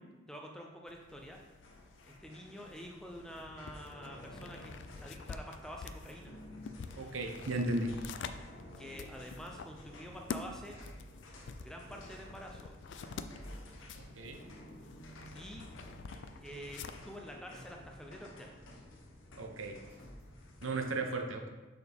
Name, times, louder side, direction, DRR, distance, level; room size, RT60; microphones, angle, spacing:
voice 1, 0.3-1.4 2.2-6.4 8.8-10.8 11.6-12.8 15.3-15.7 16.4-18.6, equal, 5° left, 0 dB, 0.5 m, -47 dB
sound 1, 0.9-17.2, left 5 dB, 60° left, 0.3 m, -48 dB
sound 2, 1.3-20.8, left 1 dB, 80° left, 0.9 m, -55 dB
sound 3, 3.0-20.7, equal, 25° left, 1.6 m, -55 dB
voice 2, 7.0-7.9 14.1-14.4 19.4-19.8 20.6-21.5, right 2 dB, 85° right, 4 dB, 0.8 m, -35 dB
6.9 x 4.2 x 3.5 m, 1.2 s
head